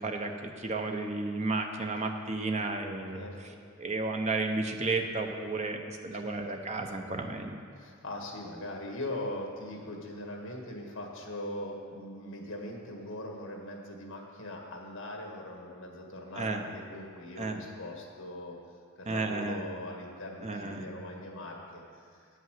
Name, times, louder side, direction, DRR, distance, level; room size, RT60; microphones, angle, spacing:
voice 1, 0.0-3.2 3.8-7.6 16.3-16.6 17.4-17.6 19.1-19.6 20.4-20.9, right 3 dB, 30° right, 4 dB, 0.8 m, -32 dB
voice 2, 3.1-3.6 6.2-6.8 7.7-18.5 19.0-22.3, left 1 dB, 60° left, 1 dB, 1.7 m, -41 dB
9.8 x 5.7 x 7.6 m, 2.2 s
head